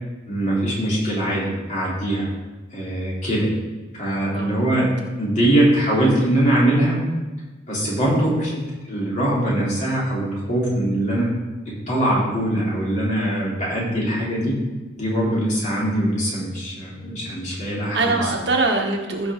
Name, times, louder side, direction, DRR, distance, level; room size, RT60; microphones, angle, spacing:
voice 1, 0.3-2.3 2.7-3.5 3.9-4.9 5.2-7.0 7.7-8.5 8.8-11.3 11.7-14.6 15.0-18.2, right 1 dB, 40° left, -6 dB, 3.5 m, -22 dB
voice 2, 4.3-4.9 17.9-19.3, right 3 dB, 65° right, 1 dB, 1.4 m, -23 dB
14.5 x 5.6 x 3.8 m, 1.2 s
head